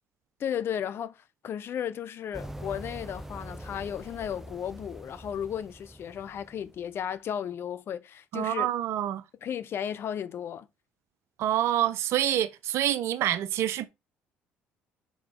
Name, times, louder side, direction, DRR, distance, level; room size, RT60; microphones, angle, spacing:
voice 1, 0.4-8.7 9.4-10.7, left 9 dB, 55° left, 0.7 m, -34 dB
sound 1, 2.3-7.1, equal, 10° right, 0.7 m, -44 dB
voice 2, 8.3-9.2 11.4-13.9, right 12 dB, 65° right, 0.6 m, -27 dB
6.2 x 4.9 x 3.7 m
hypercardioid pair, 65°, 5 cm